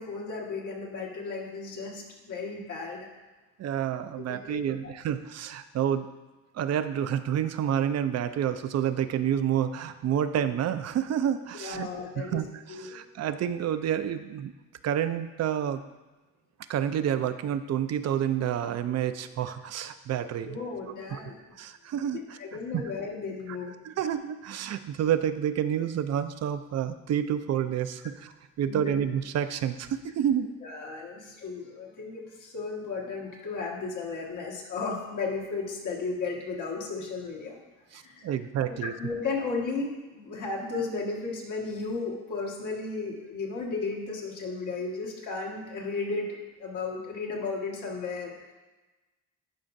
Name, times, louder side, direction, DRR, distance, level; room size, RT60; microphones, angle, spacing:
voice 1, 0.0-3.1 4.2-4.9 11.5-12.4 12.7-13.0 20.5-21.4 22.4-23.7 28.7-29.0 30.6-37.6 37.9-38.3 38.7-48.5, left 4 dB, 80° left, -2 dB, 1.6 m, -34 dB
voice 2, 3.6-6.1 6.5-11.9 12.2-14.5 14.8-15.8 16.7-20.6 20.9-21.2 21.6-22.2 23.8-30.5 37.9-38.9, right 9 dB, 60° right, 11 dB, 0.5 m, -29 dB
11.5 x 5.0 x 2.6 m, 1.2 s
cardioid pair, 90°, 30 cm